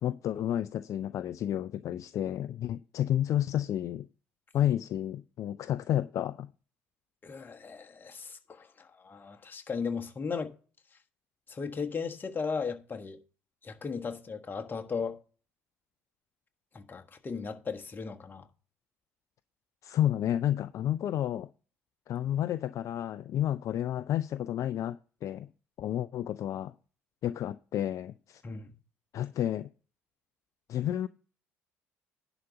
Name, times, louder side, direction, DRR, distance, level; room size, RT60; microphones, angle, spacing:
voice 1, 0.0-4.1 4.5-6.5 19.8-21.5 22.1-25.5 25.8-26.7 27.2-28.4 29.1-29.7 30.7-31.1, left 11 dB, 50° left, 0.4 m, -31 dB
voice 2, 7.2-10.5 11.5-13.2 13.6-15.2 16.7-18.5 28.4-28.8, left 5 dB, 30° left, 1.4 m, -36 dB
11.0 x 4.0 x 7.0 m
hypercardioid pair, 60°, 7 cm